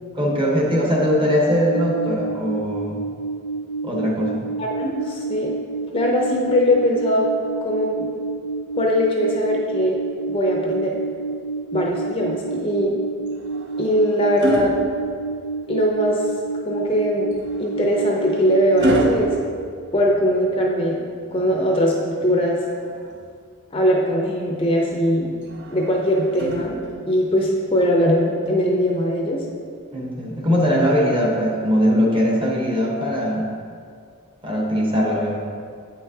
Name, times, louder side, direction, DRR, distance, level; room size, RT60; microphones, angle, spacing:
voice 1, 0.1-3.0 3.8-4.5 29.9-33.5 34.4-35.4, equal, 25° right, -2 dB, 0.8 m, -20 dB
sound 1, 1.5-19.1, right 3 dB, 70° left, 0.6 m, -30 dB
voice 2, 4.6-5.5 5.9-7.3 7.6-8.1 8.8-10.0 10.3-10.9 11.7-12.9 13.8-14.8 15.7-16.2 16.7-17.3 17.6-19.3 19.9-21.0 21.3-22.6 23.7-25.3 25.7-26.7 27.1-29.4, equal, 25° left, -1 dB, 0.5 m, -20 dB
sound 2, 13.3-15.7 17.3-20.5 22.3-23.4 25.4-27.2 28.5-28.7, right 1 dB, 50° right, 0.4 m, -30 dB
7.9 x 5.7 x 2.7 m, 2.2 s
head